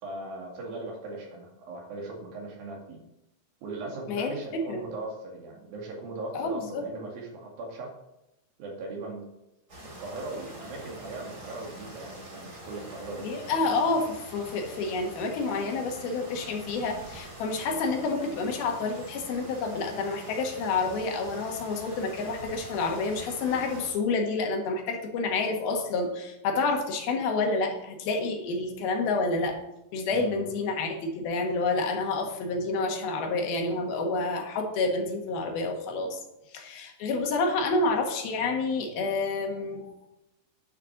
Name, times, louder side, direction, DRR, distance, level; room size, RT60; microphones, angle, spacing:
voice 1, 0.0-3.0 3.6-8.0 8.6-9.2 10.0-13.5 30.1-30.5, right 2 dB, 70° right, -1 dB, 4.0 m, -39 dB
voice 2, 4.1-4.8 6.3-6.8 13.2-29.6 29.9-36.2 36.5-39.9, left 3 dB, 75° left, 3 dB, 3.4 m, -29 dB
sound 1, 9.7-23.9, right 1 dB, 25° right, 3.5 m, -45 dB
10.5 x 6.7 x 5.9 m, 0.89 s
omnidirectional pair, 4.4 m